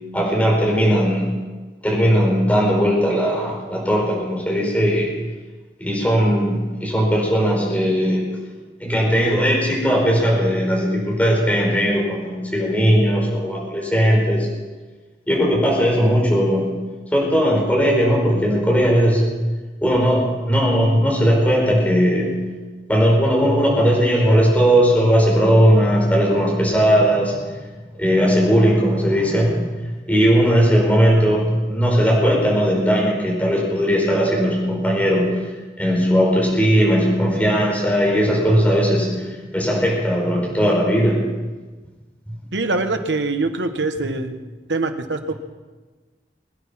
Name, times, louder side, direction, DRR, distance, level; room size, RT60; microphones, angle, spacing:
voice 1, 0.1-1.2 1.8-5.1 5.8-8.2 8.8-14.5 15.3-16.7 17.1-19.2 19.8-22.4 22.9-27.6 27.9-35.3 35.8-39.1 39.5-41.2, equal, 10° left, -3 dB, 5.1 m, -18 dB
voice 2, 42.5-44.3 44.7-45.3, right 3 dB, 85° right, 7 dB, 1.4 m, -23 dB
23.5 x 9.8 x 5.8 m, 1.3 s
head